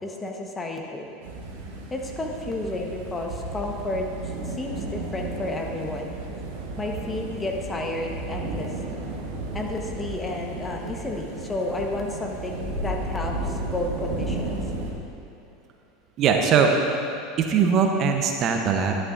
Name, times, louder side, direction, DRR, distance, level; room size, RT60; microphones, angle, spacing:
voice 1, 0.0-1.1 1.9-4.1 4.5-6.1 6.8-8.7 9.5-14.6, left 2 dB, 20° left, 1 dB, 1.2 m, -31 dB
sound 1, 1.2-14.9, right 2 dB, 75° right, 1.3 m, -33 dB
voice 2, 16.2-16.7 17.4-19.0, right 6 dB, 45° right, 3 dB, 0.8 m, -20 dB
11.0 x 9.7 x 2.6 m, 2.7 s
hypercardioid pair, 90°, 0 cm